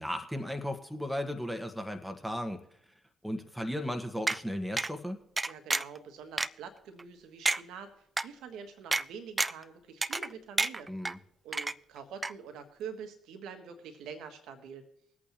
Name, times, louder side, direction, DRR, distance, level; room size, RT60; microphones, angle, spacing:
voice 1, 0.0-2.6 3.2-5.2 10.9-11.2, equal, ahead, 6 dB, 1.5 m, -35 dB
sound 1, 4.3-4.4 4.8-4.9 5.4-6.0 6.4-6.5 7.0-7.1 7.5-7.6 8.2-8.3 8.9-9.0 9.4-9.6 10.0-10.3 10.6-11.1 11.5-12.0 12.2-12.3, right 3 dB, 25° right, 0.4 m, -29 dB
voice 2, 5.5-10.9 11.4-14.8, right 6 dB, 65° right, 7 dB, 1.5 m, -45 dB
21.5 x 8.5 x 2.9 m, 0.73 s
figure-of-eight pair, 45°, 0 cm